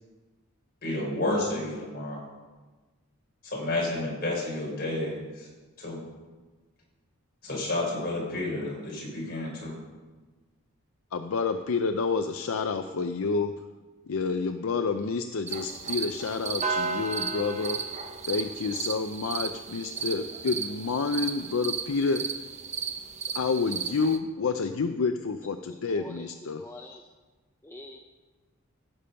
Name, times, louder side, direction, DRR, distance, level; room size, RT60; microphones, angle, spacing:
voice 1, 0.8-2.2 3.4-5.5 5.8-6.0 7.4-9.7, left 2 dB, 45° left, -4 dB, 4.7 m, -31 dB
voice 2, 11.1-13.6 14.1-17.9 18.3-22.3 23.3-26.7, left 4 dB, 65° left, 8 dB, 0.5 m, -29 dB
sound 1, 15.5-24.2, right 5 dB, 30° right, 0.8 m, -34 dB
voice 3, 25.7-26.3 26.6-27.0 27.6-28.0, left 1 dB, 10° left, 2 dB, 0.6 m, -45 dB
16.0 x 6.8 x 5.7 m, 1.3 s
head